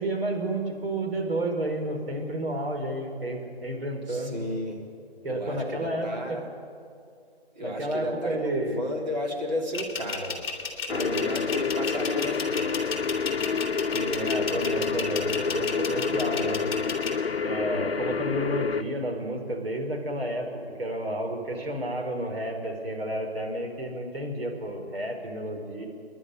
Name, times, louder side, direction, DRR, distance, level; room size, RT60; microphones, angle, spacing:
voice 1, 0.0-4.3 5.2-6.4 7.6-8.9 11.0-11.2 13.9-16.7 17.4-20.5 20.8-25.9, right 1 dB, 60° right, 2 dB, 4.5 m, -31 dB
voice 2, 4.1-4.8 5.3-6.4 7.5-10.4 10.9-13.0 17.7-17.9, equal, 40° right, -1 dB, 4.0 m, -33 dB
sound 1, 9.7-17.1, left 5 dB, 20° left, 2.8 m, -33 dB
sound 2, 10.9-18.8, left 5 dB, 65° left, 0.8 m, -28 dB
27.0 x 11.0 x 9.9 m, 2.3 s
figure-of-eight pair, 165°, 32 cm